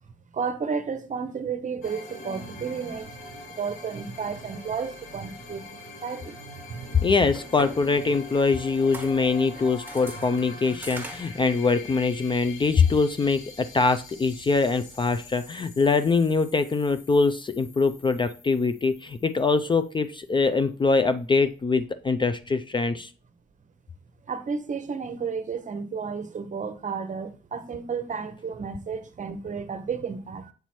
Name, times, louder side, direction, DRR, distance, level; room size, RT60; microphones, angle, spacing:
voice 1, 0.3-6.4 6.7-7.0 10.2-10.3 10.7-10.8 24.3-30.5, right 5 dB, 40° right, 0.8 m, -32 dB
sound 1, 1.8-20.3, left 2 dB, 80° left, 3.0 m, -44 dB
voice 2, 7.0-23.1, left 4 dB, 25° left, 0.4 m, -23 dB
sound 2, 7.2-15.5, right 2 dB, 10° right, 1.4 m, -45 dB
8.0 x 3.0 x 4.3 m
cardioid pair, 90°, 20 cm